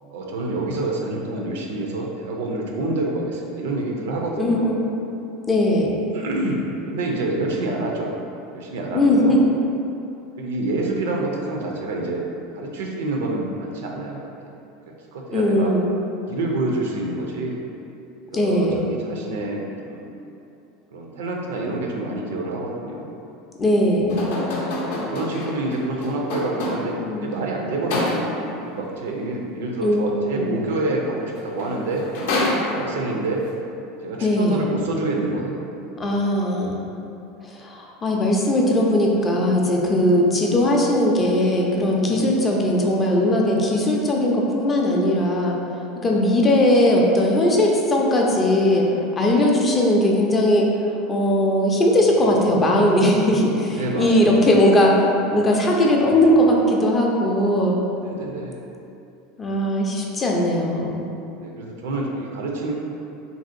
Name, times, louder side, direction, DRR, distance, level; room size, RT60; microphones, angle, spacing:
voice 1, 0.1-4.7 6.1-8.1 8.5-9.4 10.4-12.2 12.5-14.2 15.1-15.7 16.3-17.6 18.3-20.0 20.9-23.1 25.0-32.0 32.7-33.4 34.0-35.6 42.0-42.3 46.0-46.1 53.7-54.5 58.0-58.7 61.4-62.7, right 2 dB, 85° right, -1 dB, 0.4 m, -27 dB
voice 2, 4.4-4.8 5.5-6.0 8.9-9.4 15.3-15.9 18.3-18.9 23.6-24.3 27.0-27.4 29.8-30.0 30.4-30.6 34.2-34.7 36.0-36.8 37.4-45.6 46.0-48.9 49.2-50.7 51.1-57.8 59.4-61.0, left 1 dB, 20° left, -2 dB, 0.4 m, -19 dB
sound 1, 24.1-27.1 27.9-28.5 31.2-31.3 31.6-33.2, left 1 dB, 80° left, 0.6 m, -27 dB
2.9 x 2.6 x 2.5 m, 2.8 s
supercardioid pair, 125°, 0 cm